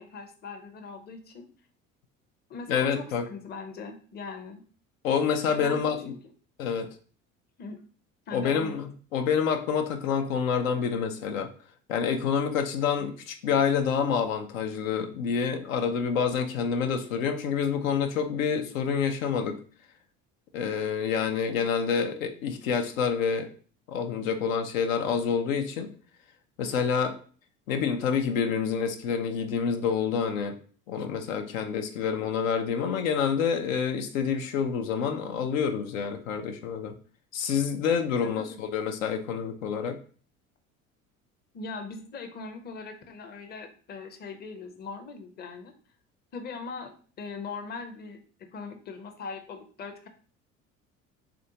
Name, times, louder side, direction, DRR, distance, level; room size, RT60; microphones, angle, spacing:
voice 1, 0.0-1.4 2.5-4.6 5.5-6.2 7.6-7.8 8.3-8.8 38.2-38.6 41.5-45.7 46.3-48.2 48.5-50.1, left 4 dB, 25° left, 6 dB, 0.5 m, -40 dB
voice 2, 2.7-3.2 5.0-6.1 6.6-6.9 8.3-11.5 11.9-19.6 20.5-23.5 23.9-25.9 26.6-27.1 27.7-30.6 30.9-36.9 37.3-40.0, left 6 dB, 80° left, 6 dB, 0.5 m, -27 dB
3.4 x 2.5 x 2.7 m, 0.42 s
hypercardioid pair, 60°, 40 cm